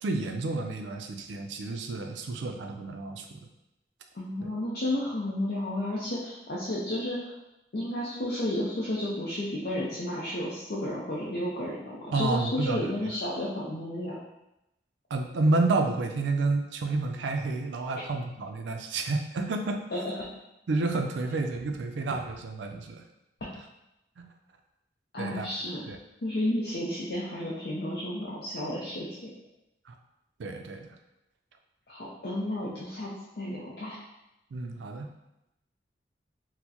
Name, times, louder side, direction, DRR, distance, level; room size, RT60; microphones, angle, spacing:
voice 1, 0.0-3.4 4.4-4.5 12.1-12.9 15.1-19.8 20.7-23.0 24.2-24.3 25.2-25.5 25.9-26.0 29.9-30.0 30.4-30.9 34.5-35.1, right 3 dB, 80° right, 5 dB, 0.4 m, -30 dB
voice 2, 4.1-7.3 7.7-14.2 19.9-20.0 25.1-25.8 26.2-29.2 31.9-33.1 33.4-34.0, left 1 dB, 55° left, -6 dB, 0.5 m, -32 dB
4.3 x 2.1 x 2.8 m, 0.89 s
head